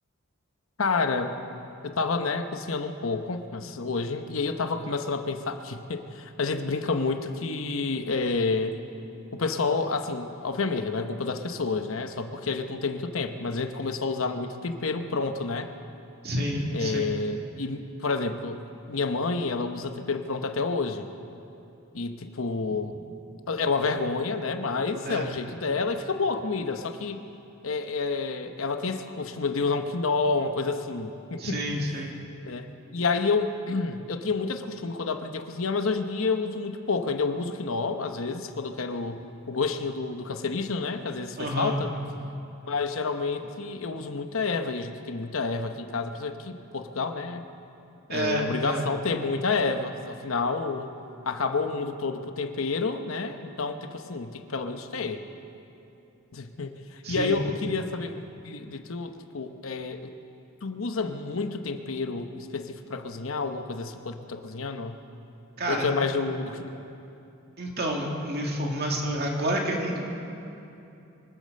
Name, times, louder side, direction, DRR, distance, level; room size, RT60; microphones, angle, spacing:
voice 1, 0.8-1.3 1.8-8.8 9.3-15.7 16.7-18.6 18.9-21.1 21.9-22.9 23.5-27.2 27.6-31.6 32.5-32.7 32.9-39.2 39.5-41.9 42.7-47.4 48.1-50.9 51.2-55.2 56.3-58.1 58.4-60.1 60.6-65.0 65.7-66.8, left 4 dB, 70° left, 7 dB, 0.9 m, -29 dB
voice 2, 16.2-17.1 25.0-25.3 31.4-32.1 41.4-41.9 48.1-48.8 57.0-57.4 65.6-65.9 67.6-70.0, right 1 dB, 50° right, 0 dB, 2.2 m, -29 dB
24.0 x 8.5 x 6.6 m, 2.8 s
head